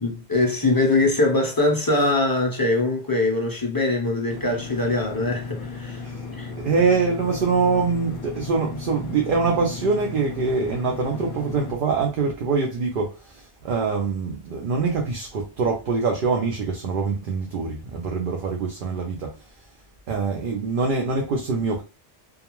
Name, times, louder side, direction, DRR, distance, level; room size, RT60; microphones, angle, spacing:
voice 1, 0.0-6.5, left 2 dB, 30° left, 0.4 m, -22 dB
sound 1, 4.3-11.7, left 4 dB, 60° left, 0.7 m, -35 dB
voice 2, 6.6-19.4 20.1-21.8, right 4 dB, 60° right, 0.7 m, -24 dB
2.3 x 2.3 x 2.9 m
omnidirectional pair, 1.1 m